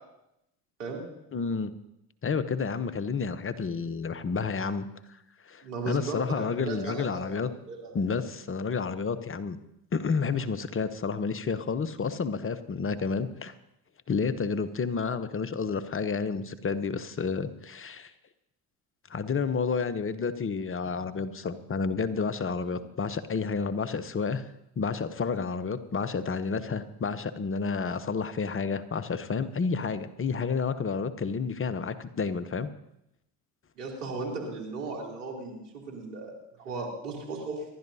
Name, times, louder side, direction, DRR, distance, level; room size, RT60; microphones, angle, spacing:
voice 1, 1.3-1.7 2.2-4.9 5.5-7.5 7.9-9.6 9.9-13.5 14.1-18.1 19.1-24.4 24.8-32.7, left 5 dB, 30° left, 12 dB, 0.9 m, -30 dB
voice 2, 5.6-7.2 7.7-7.9 22.7-22.8 33.8-36.3 36.6-37.6, right 3 dB, 85° right, -1 dB, 3.3 m, -36 dB
25.5 x 12.0 x 2.8 m, 0.84 s
hypercardioid pair, 65°, 46 cm